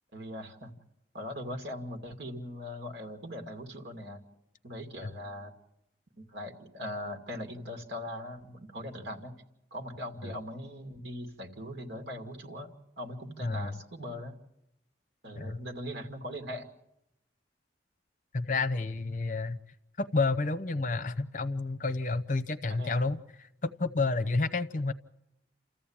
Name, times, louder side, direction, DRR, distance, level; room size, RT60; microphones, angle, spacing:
voice 1, 0.1-0.7 1.1-4.2 4.6-5.5 6.2-9.4 9.7-14.3 15.2-16.7 22.7-23.0, left 1 dB, 85° right, 5 dB, 2.5 m, -40 dB
voice 2, 13.4-13.7 15.3-15.6 18.3-19.6 20.0-24.9, left 3 dB, 45° left, 14 dB, 0.8 m, -30 dB
29.0 x 14.5 x 8.8 m, 0.88 s
head